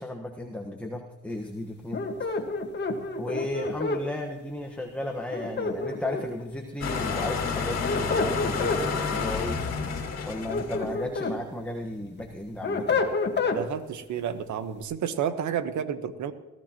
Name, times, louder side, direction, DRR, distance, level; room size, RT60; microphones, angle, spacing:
voice 1, 0.0-2.3 3.2-9.6 10.2-13.0, left 1 dB, 5° left, 1 dB, 1.3 m, -34 dB
sound 1, 1.9-4.0 5.3-6.4 7.6-8.8 10.2-11.4 11.8-13.6, left 3 dB, 35° left, 1.7 m, -28 dB
sound 2, 6.8-11.0, left 5 dB, 55° left, 2.2 m, -30 dB
voice 2, 13.5-16.3, right 8 dB, 70° right, 11 dB, 1.2 m, -31 dB
20.5 x 14.0 x 3.0 m, 1.1 s
cardioid pair, 90°, 30 cm